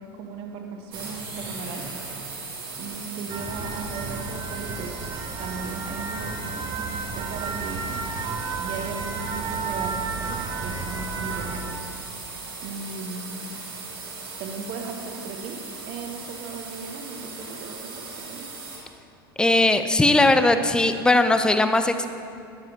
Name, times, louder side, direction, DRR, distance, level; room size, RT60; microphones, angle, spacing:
voice 1, 0.0-1.9 2.8-5.1 5.4-11.9 12.6-13.6 14.4-15.6 15.9-18.4, right 4 dB, 50° right, 3 dB, 1.2 m, -37 dB
sound 1, 0.9-18.8, right 4 dB, 70° right, 2.7 m, -38 dB
sound 2, 3.3-11.6, right 4 dB, 35° right, 1.0 m, -32 dB
voice 2, 19.4-22.1, left 2 dB, 5° left, 9 dB, 0.5 m, -19 dB
12.5 x 9.5 x 2.8 m, 2.5 s
figure-of-eight pair, 75°, 12 cm